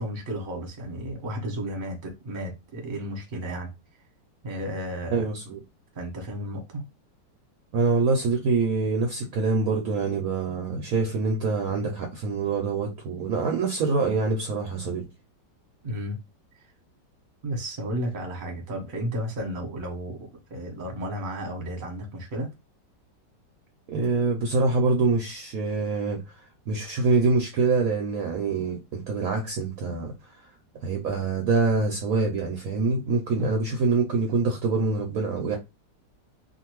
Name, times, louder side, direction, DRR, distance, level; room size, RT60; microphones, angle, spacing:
voice 1, 0.0-3.7 4.4-5.2 5.9-6.8 15.8-16.2 17.4-22.5 33.4-33.5, equal, 35° right, 0.9 m, -33 dB
voice 2, 5.1-5.6 7.7-15.0 23.9-30.2 30.8-35.6, right 4 dB, 65° right, 0.9 m, -25 dB
2.6 x 2.5 x 3.0 m
omnidirectional pair, 1.9 m